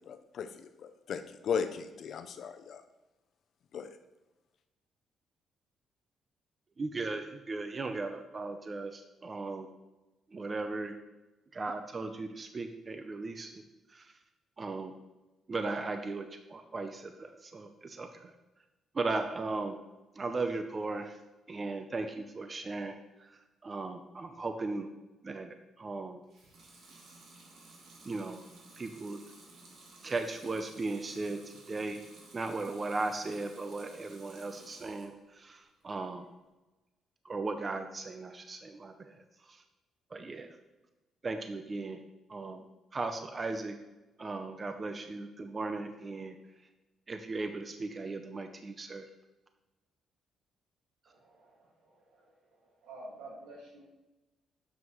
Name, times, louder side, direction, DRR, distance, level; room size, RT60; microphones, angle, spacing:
voice 1, 0.0-2.8 3.7-4.0, left 6 dB, 65° left, 9 dB, 0.6 m, -37 dB
voice 2, 6.8-9.7 10.3-10.9 11.5-13.6 13.9-14.1 14.6-14.9 15.5-18.3 18.9-19.8 20.1-21.2 21.5-24.9 25.2-26.2 28.0-28.4 28.8-29.2 30.0-32.0 32.3-36.3 37.2-39.6 40.1-40.6 41.2-42.0 42.3-42.7 42.9-43.8 44.2-46.4 47.1-49.1, right 3 dB, 35° right, 7 dB, 0.6 m, -37 dB
Water tap faucet / Sink (filling or washing) / Liquid, 26.2-35.2 35.6-36.3, right 2 dB, 70° right, 1.6 m, -55 dB
voice 3, 51.1-53.8, right 2 dB, 85° right, -3 dB, 2.1 m, -51 dB
7.3 x 6.0 x 3.1 m, 1.1 s
cardioid pair, 90°, 0 cm